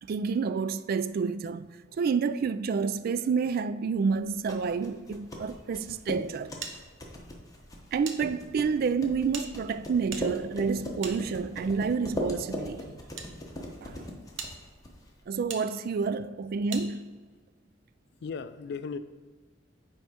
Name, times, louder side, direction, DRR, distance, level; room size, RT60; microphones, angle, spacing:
voice 1, 0.0-1.7 2.0-6.6 7.9-12.9 13.8-14.0 15.3-17.2, right 5 dB, 50° right, 0.3 m, -29 dB
sound 1, 4.2-15.2, left 1 dB, 20° left, 1.0 m, -40 dB
sound 2, 6.6-8.2 8.5-8.6 9.3-11.8 12.6-13.3 13.9-14.0 14.4-14.5 15.5-15.6 16.7-16.9, right 6 dB, 80° right, 0.8 m, -41 dB
voice 2, 18.2-19.0, left 5 dB, 60° left, 0.4 m, -37 dB
9.5 x 3.5 x 4.3 m
head